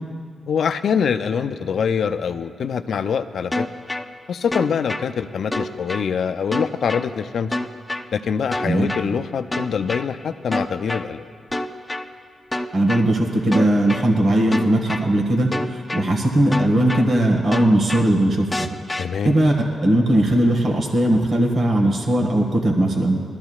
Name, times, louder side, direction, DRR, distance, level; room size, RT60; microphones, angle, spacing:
voice 1, 0.5-3.7 4.3-7.6 8.1-11.3 19.0-19.3, left 7 dB, 75° left, 9 dB, 0.5 m, -24 dB
sound 1, 3.5-4.0 4.5-5.0 5.5-6.0 6.5-7.0 7.5-8.0 8.5-9.0 9.5-10.0 10.5-11.0 11.5-12.0 12.5-13.0 13.5-14.0 14.5-15.0 15.5-16.0 16.5-17.0 17.5-18.0 18.5-19.0, left 1 dB, 15° left, 0.7 m, -26 dB
voice 2, 12.7-18.7 19.2-19.5 19.8-23.2, right 1 dB, 55° right, 1 dB, 1.7 m, -19 dB
20.0 x 13.0 x 2.4 m, 2.1 s
cardioid pair, 70°, 0 cm